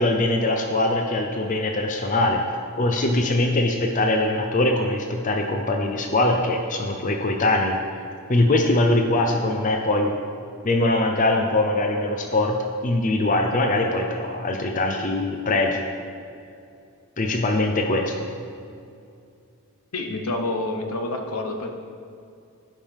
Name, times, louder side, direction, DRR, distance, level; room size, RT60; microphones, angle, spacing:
voice 1, 0.0-2.4 2.8-10.1 10.6-15.9 17.2-18.3, left 2 dB, 35° left, 3 dB, 0.6 m, -22 dB
voice 2, 19.9-21.7, left 2 dB, 85° left, 4 dB, 1.0 m, -28 dB
16.5 x 5.5 x 3.6 m, 2.5 s
head